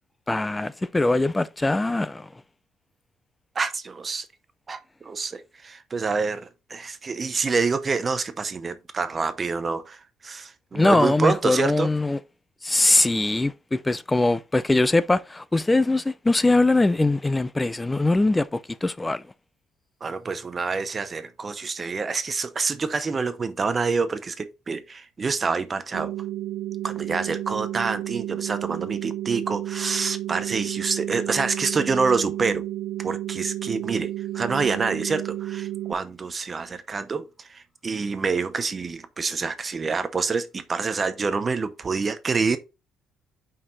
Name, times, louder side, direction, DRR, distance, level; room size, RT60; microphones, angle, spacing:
voice 1, 0.3-2.3 10.7-12.2 12.6-19.2, left 2 dB, 10° left, 0.4 m, -22 dB
voice 2, 3.6-4.3 4.7-11.9 20.0-26.1 26.8-32.6 33.0-42.6, right 4 dB, 25° right, 0.7 m, -27 dB
sound 1, 25.9-35.9, right 14 dB, 70° right, 0.4 m, -32 dB
5.5 x 5.0 x 3.9 m
cardioid pair, 145°, 0 cm